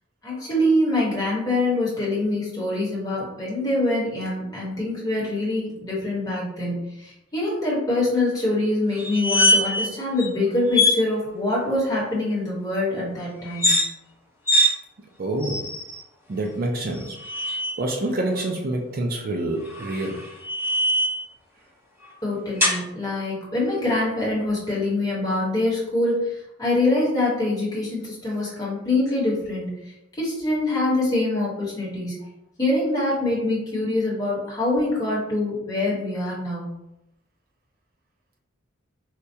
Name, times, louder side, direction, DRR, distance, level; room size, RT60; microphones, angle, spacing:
voice 1, 0.2-13.8 22.2-32.2 32.6-36.7, left 2 dB, 20° left, -6 dB, 1.1 m, -24 dB
sound 1, 9.0-9.9 10.2-10.3 10.7-11.0 13.5-13.9 14.5-14.7 15.4-16.0 16.9-17.8 19.6-21.3 22.6-22.8, left 1 dB, 10° right, 0.9 m, -22 dB
voice 2, 15.2-15.7 16.3-17.2 17.5-20.3, right 1 dB, 45° right, 2 dB, 0.4 m, -27 dB
4.3 x 2.3 x 2.7 m, 0.87 s
head